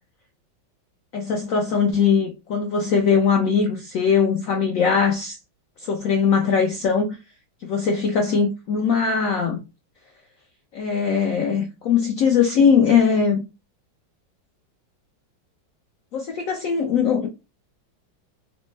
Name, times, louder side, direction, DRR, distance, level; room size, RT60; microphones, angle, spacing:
voice 1, 1.1-5.4 5.8-7.2 7.6-9.6 10.7-13.4 16.1-17.3, left 6 dB, 85° left, 0.7 m, -20 dB
3.3 x 2.1 x 3.1 m
omnidirectional pair, 2.0 m